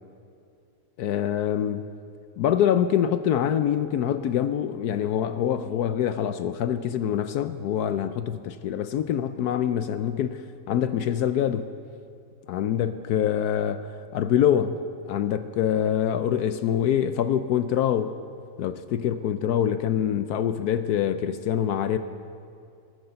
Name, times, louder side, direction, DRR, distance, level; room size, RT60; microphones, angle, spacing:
voice 1, 1.0-1.9 2.4-11.7 12.5-18.2 18.6-22.0, left 9 dB, 70° left, 1.0 m, -25 dB
21.0 x 9.7 x 6.8 m
omnidirectional pair, 1.9 m